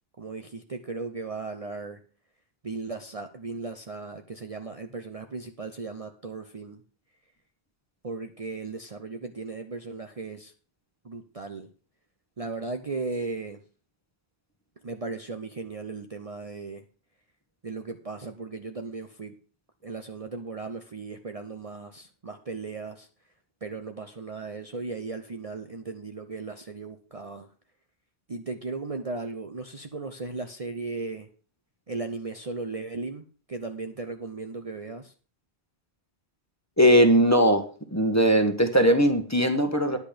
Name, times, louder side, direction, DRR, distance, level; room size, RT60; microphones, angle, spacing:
voice 1, 0.2-2.0 2.6-6.8 8.0-10.5 11.0-11.7 12.4-13.6 14.8-16.8 17.6-19.3 19.8-23.1 23.6-27.5 28.3-31.3 31.9-35.1, right 3 dB, 35° right, 5 dB, 0.8 m, -36 dB
voice 2, 36.8-37.7 37.9-40.0, equal, 15° left, 5 dB, 1.3 m, -19 dB
10.5 x 8.2 x 5.1 m, 0.38 s
omnidirectional pair, 1.1 m